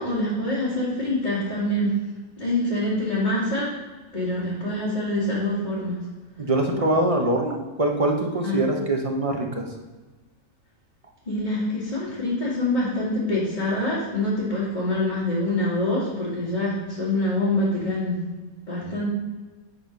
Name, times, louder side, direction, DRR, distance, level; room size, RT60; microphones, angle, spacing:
voice 1, 0.0-1.9 2.4-3.7 4.1-6.0 8.4-8.6 11.3-18.2 18.7-19.1, left 1 dB, 30° left, -9 dB, 2.2 m, -25 dB
voice 2, 6.4-9.6, right 1 dB, 30° right, 2 dB, 0.7 m, -23 dB
8.8 x 4.4 x 5.2 m, 1.3 s
omnidirectional pair, 1.5 m